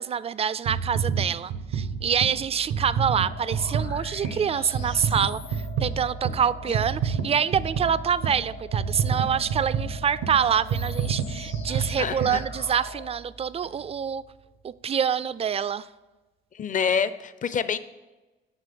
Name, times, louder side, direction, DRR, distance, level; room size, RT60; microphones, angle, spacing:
voice 1, 0.0-14.2 14.6-15.9, right 7 dB, 30° right, 17 dB, 0.3 m, -26 dB
sound 1, 0.7-13.1 13.6-13.7, right 6 dB, 90° right, 0.9 m, -30 dB
sound 2, 3.2-13.1, left 6 dB, 70° left, 1.3 m, -44 dB
voice 2, 11.7-12.4 16.5-17.8, left 6 dB, 40° left, 14 dB, 0.6 m, -27 dB
8.0 x 6.2 x 6.9 m, 1.2 s
cardioid pair, 90°, 20 cm